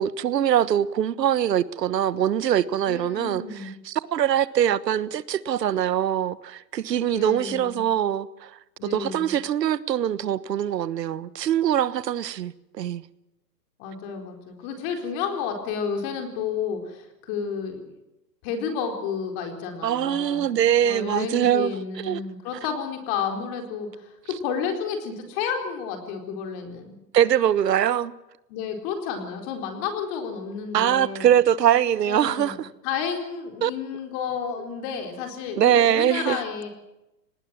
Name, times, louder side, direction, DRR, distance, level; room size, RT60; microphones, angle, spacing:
voice 1, 0.0-8.5 8.9-13.0 19.8-21.7 22.0-22.2 27.1-28.1 30.7-32.7 33.6-33.7 35.6-36.4, right 10 dB, 80° right, 1.4 m, -23 dB
voice 2, 2.9-3.7 7.1-7.8 8.8-9.3 13.8-17.9 18.4-27.0 28.5-31.3 32.0-32.6 32.8-36.7, left 6 dB, 30° left, 4.2 m, -31 dB
25.0 x 19.5 x 7.5 m
hypercardioid pair, 155°, 49 cm